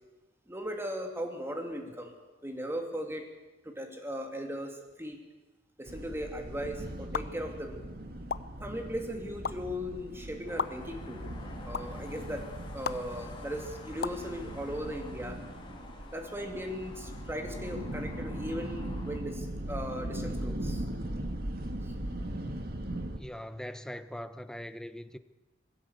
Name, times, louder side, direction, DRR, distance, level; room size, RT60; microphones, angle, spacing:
voice 1, 0.5-2.1 2.4-3.2 3.6-5.2 5.8-7.8 8.6-11.2 11.6-12.4 12.7-15.4 16.1-20.8 21.8-21.9, equal, 15° right, 2.8 m, -38 dB
sound 1, 5.9-23.2, right 1 dB, 55° right, 2.0 m, -39 dB
sound 2, 7.1-7.2 8.3-8.4 9.4-9.5 10.6-10.7 11.7-11.8 12.8-13.0 14.0-14.2, left 6 dB, 60° left, 0.7 m, -31 dB
sound 3, 10.5-19.2, left 3 dB, 30° left, 3.1 m, -51 dB
voice 2, 23.2-25.2, equal, 5° left, 0.8 m, -41 dB
20.5 x 16.0 x 8.3 m
head